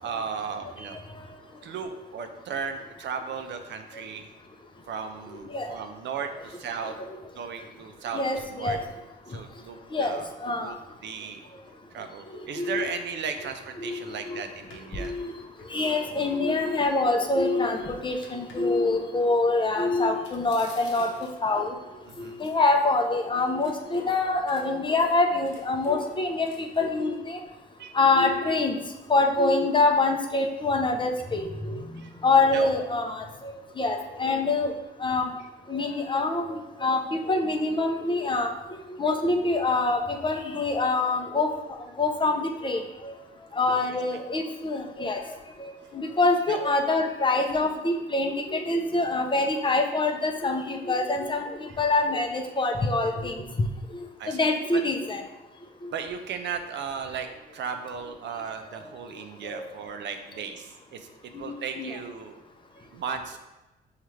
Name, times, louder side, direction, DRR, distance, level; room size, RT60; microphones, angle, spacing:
voice 1, 0.0-1.0 1.6-4.3 4.9-6.9 7.3-8.2 8.5-8.8 9.3-10.3 10.6-10.8 11.0-11.4 11.9-15.1 22.1-22.4 27.8-27.9 32.0-32.1 32.5-32.7 43.7-43.9 46.5-46.6 54.2-54.4 54.7-54.8 55.9-57.3 57.5-61.1 61.4-62.4 62.9-63.4, right 6 dB, 65° right, 7 dB, 0.5 m, -35 dB
voice 2, 8.1-8.8 9.9-10.7 12.6-12.8 13.8-14.0 14.3-14.4 15.0-15.3 15.7-21.1 21.4-21.7 22.2-27.4 27.9-28.8 29.1-31.8 32.2-34.7 35.0-35.3 35.7-38.5 39.0-41.5 42.0-43.1 43.6-45.2 45.6-51.4 51.8-53.4 54.3-55.2 55.8-55.9 59.5-59.6 61.3-62.0, left 3 dB, 25° left, 3 dB, 0.5 m, -25 dB
sound 1, 13.5-13.6 14.0-14.1 14.6-16.8 17.3-18.6 20.2-21.5 22.1-23.1 23.5-26.9, left 6 dB, 75° left, 0.9 m, -45 dB
5.5 x 2.4 x 3.1 m, 1.1 s
cardioid pair, 90°, 20 cm